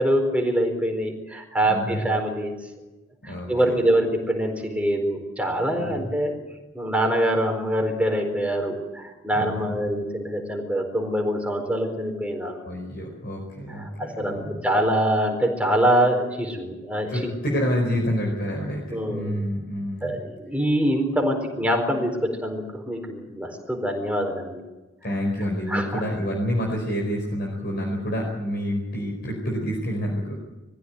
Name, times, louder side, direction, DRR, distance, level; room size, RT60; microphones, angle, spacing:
voice 1, 0.0-2.5 3.2-6.3 6.7-12.6 13.7-17.3 18.9-19.4 20.0-24.6 25.7-26.0, right 1 dB, 5° right, 2 dB, 4.4 m, -24 dB
voice 2, 1.6-2.0 3.3-3.5 5.8-6.1 9.3-9.8 12.6-14.7 17.1-20.2 25.0-30.4, equal, 50° left, 0 dB, 4.8 m, -28 dB
22.5 x 15.0 x 9.6 m, 1.1 s
head